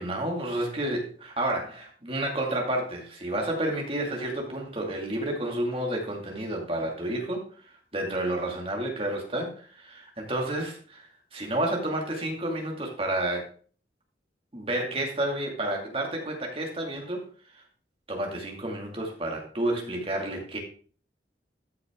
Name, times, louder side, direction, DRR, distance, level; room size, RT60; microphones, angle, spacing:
voice 1, 0.0-13.5 14.5-17.2 17.5-17.6 18.1-20.6, right 1 dB, 30° right, 1 dB, 2.3 m, -30 dB
13.5 x 6.3 x 3.7 m, 0.43 s
head